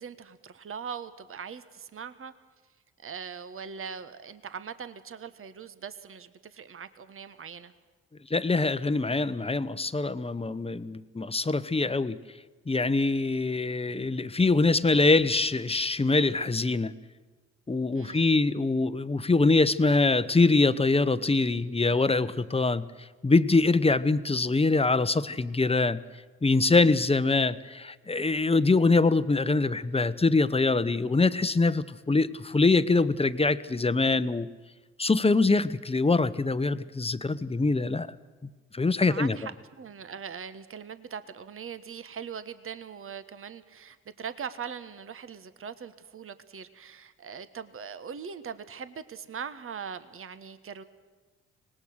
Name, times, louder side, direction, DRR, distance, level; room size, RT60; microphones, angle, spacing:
voice 1, 0.0-2.3 3.0-7.7 17.9-18.4 39.0-50.8, right 7 dB, 45° right, 12 dB, 1.3 m, -41 dB
voice 2, 8.3-12.2 12.7-16.9 17.7-22.9 23.2-26.0 26.4-34.5 35.0-38.1 38.7-39.4, left 3 dB, 20° left, 13 dB, 1.0 m, -24 dB
25.0 x 19.0 x 6.5 m, 1.4 s
hypercardioid pair, 45°, 31 cm